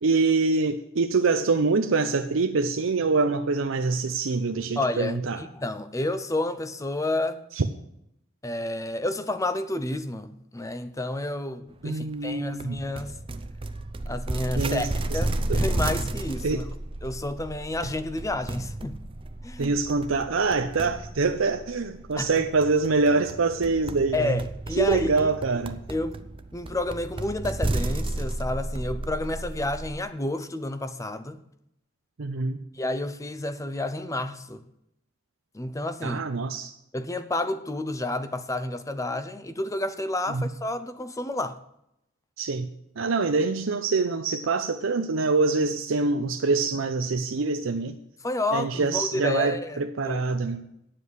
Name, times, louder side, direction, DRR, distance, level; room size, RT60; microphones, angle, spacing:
voice 1, 0.0-5.4 7.6-7.7 11.8-12.8 14.6-15.2 15.5-15.6 16.4-16.6 19.6-24.4 24.8-25.8 32.2-32.6 36.0-36.8 40.3-40.4 42.4-42.7 43.0-48.0 48.5-50.7, right 4 dB, 85° right, 0.7 m, -25 dB
voice 2, 4.8-7.4 8.4-13.2 14.1-16.6 17.0-19.0 19.4-19.8 22.2-22.3 24.1-25.3 25.9-26.2 26.5-31.4 32.7-34.6 35.5-36.2 36.9-41.6 48.2-50.2, left 1 dB, 15° left, 0.6 m, -30 dB
sound 1, 12.6-30.0, right 2 dB, 25° right, 0.6 m, -33 dB
9.7 x 7.6 x 6.3 m
head